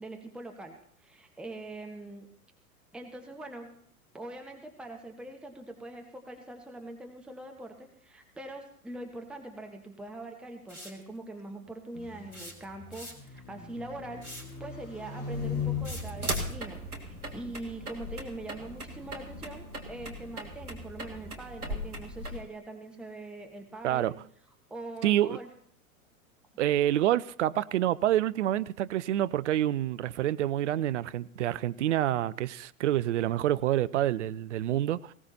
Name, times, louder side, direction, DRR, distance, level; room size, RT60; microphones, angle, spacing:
voice 1, 0.0-2.3 2.9-3.7 4.1-24.2 24.7-25.5, right 2 dB, ahead, 1.2 m, -43 dB
sound 1, 10.7-11.0 12.3-13.4 14.2-14.6 15.8-16.6, left 1 dB, 80° left, 3.3 m, -44 dB
sound 2, 11.9-17.4, left 7 dB, 20° left, 3.3 m, -39 dB
sound 3, 15.3-22.4, right 1 dB, 80° right, 1.8 m, -38 dB
voice 2, 25.0-25.4 26.6-35.1, right 12 dB, 55° right, 0.5 m, -27 dB
18.5 x 17.0 x 2.8 m
figure-of-eight pair, 95°, 44 cm